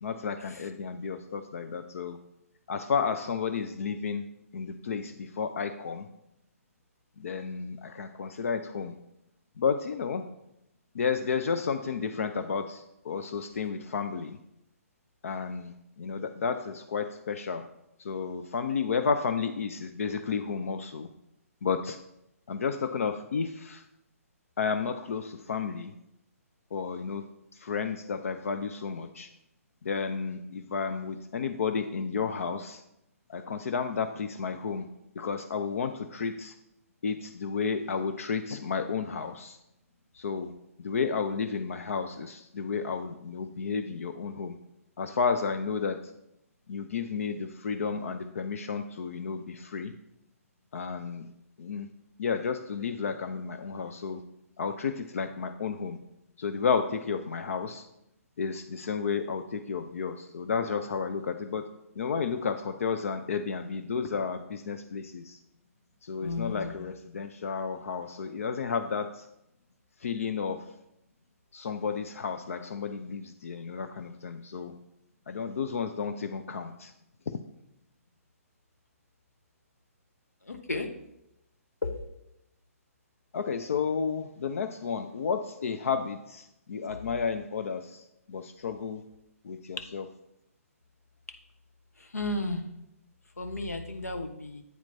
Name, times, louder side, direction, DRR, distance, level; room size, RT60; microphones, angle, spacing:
voice 1, 0.0-2.2 2.7-4.2 4.5-6.1 7.2-8.9 9.6-10.2 10.9-14.4 15.2-17.6 18.0-21.1 21.6-22.0 22.5-23.8 24.6-25.9 26.7-27.2 27.6-29.3 29.8-32.8 33.3-34.9 35.2-36.5 37.0-39.6 40.2-40.5 40.8-44.6 45.0-46.0 46.7-49.9 50.7-51.3 51.6-51.9 52.2-54.2 54.6-56.0 56.4-57.8 58.4-61.7 62.0-65.4 66.0-69.2 70.0-70.6 71.5-74.7 75.3-76.9 83.3-88.0 88.3-89.0 89.4-90.1, left 5 dB, 65° left, 8 dB, 0.5 m, -32 dB
voice 2, 66.2-66.7 80.5-80.9 92.1-92.6 93.4-94.6, left 2 dB, 85° left, 6 dB, 1.0 m, -33 dB
8.2 x 4.4 x 4.1 m, 0.83 s
figure-of-eight pair, 130°, 8 cm